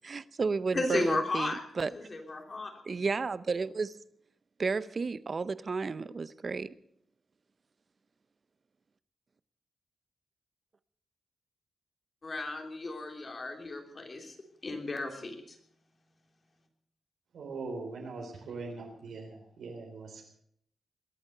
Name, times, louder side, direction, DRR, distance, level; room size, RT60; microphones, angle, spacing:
voice 1, 0.0-1.9 2.9-4.0 4.6-6.7, right 4 dB, 40° right, 16 dB, 0.7 m, -32 dB
voice 2, 0.7-1.6 1.9-2.7 12.2-14.4 14.6-15.6, left 2 dB, 35° left, 3 dB, 3.4 m, -34 dB
voice 3, 17.3-20.3, right 3 dB, 85° right, 1 dB, 3.8 m, -41 dB
22.0 x 8.7 x 6.7 m, 0.68 s
cardioid pair, 100°, 0 cm